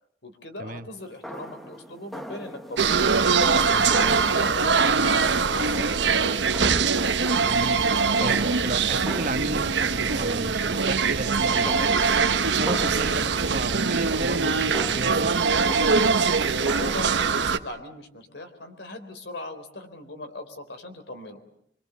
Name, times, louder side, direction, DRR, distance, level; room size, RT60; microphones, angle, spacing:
voice 1, 0.2-3.0 3.4-6.5 16.3-21.4, left 1 dB, 80° left, 8 dB, 3.7 m, -39 dB
sound 1, 0.9-17.0, equal, ahead, 1.0 m, -40 dB
sound 2, 2.8-17.6, right 5 dB, 80° right, 1.1 m, -22 dB
voice 2, 7.4-7.8 8.2-12.1 12.5-15.4, right 2 dB, 45° right, 8 dB, 1.3 m, -33 dB
26.0 x 24.0 x 7.0 m, 0.71 s
head